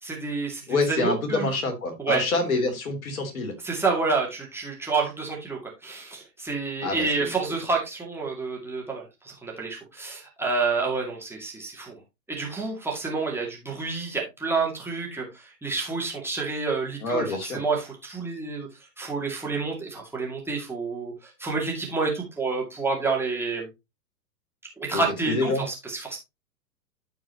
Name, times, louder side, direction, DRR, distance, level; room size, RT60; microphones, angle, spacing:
voice 1, 0.0-1.5 2.0-2.2 3.6-12.0 12.3-18.7 19.0-23.7 24.8-26.2, right 4 dB, 5° right, -2 dB, 2.3 m, -29 dB
voice 2, 0.7-3.5 6.8-7.3 17.0-17.6 24.9-25.6, left 3 dB, 60° left, 5 dB, 3.2 m, -27 dB
14.0 x 5.0 x 2.9 m, 0.23 s
figure-of-eight pair, 105°, 48 cm